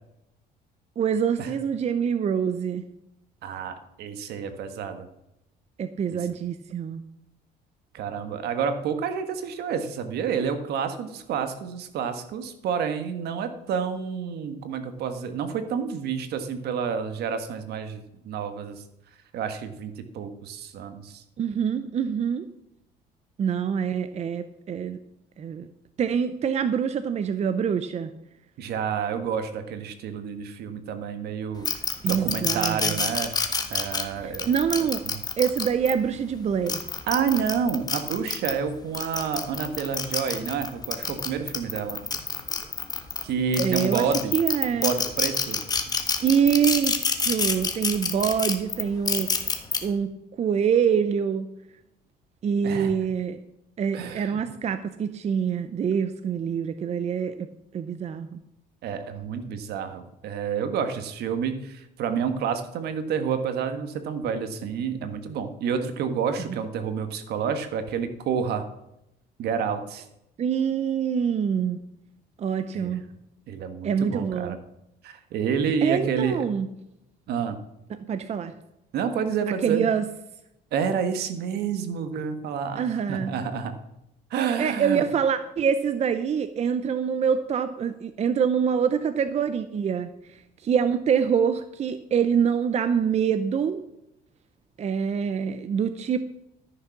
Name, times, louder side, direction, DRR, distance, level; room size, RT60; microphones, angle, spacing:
voice 1, 1.0-2.8 5.8-7.0 21.4-22.4 23.4-25.0 25.4-25.7 26.0-28.1 32.0-33.0 34.2-35.0 35.4-36.8 43.6-44.1 44.3-44.9 46.2-49.3 49.8-50.1 50.4-51.5 52.4-53.4 53.8-57.5 57.7-58.4 70.4-71.8 72.4-73.0 73.8-74.5 75.8-76.7 77.9-78.5 79.6-80.0 82.8-83.3 84.6-90.1 90.6-93.8 94.8-96.2, right 7 dB, 40° right, 11 dB, 0.7 m, -25 dB
voice 2, 3.4-5.1 6.1-6.2 7.9-18.8 19.3-21.2 28.6-31.8 32.1-33.3 33.7-34.5 35.1-35.2 37.1-42.0 43.2-44.4 44.7-45.6 52.6-53.0 53.9-54.4 58.8-68.6 69.4-70.0 72.7-73.0 73.5-74.6 75.0-76.4 77.3-77.6 78.9-79.9 80.7-83.7 84.3-85.1, right 7 dB, 75° right, 9 dB, 1.5 m, -29 dB
sound 1, 31.7-35.9 36.5-38.5 38.9-43.2 43.5-49.8, left 4 dB, 25° left, 1.5 m, -27 dB
13.0 x 6.8 x 6.0 m, 0.84 s
cardioid pair, 110°, 17 cm